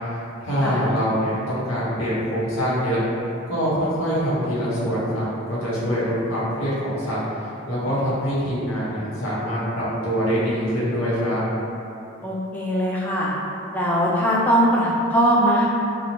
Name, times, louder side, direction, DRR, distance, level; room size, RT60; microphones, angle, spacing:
voice 1, 0.4-3.0 3.5-7.2 7.7-11.4, equal, 80° left, -9 dB, 0.8 m, -24 dB
voice 2, 12.2-13.3 13.7-15.7, equal, 10° left, -5 dB, 0.3 m, -20 dB
2.6 x 2.0 x 2.9 m, 2.8 s
head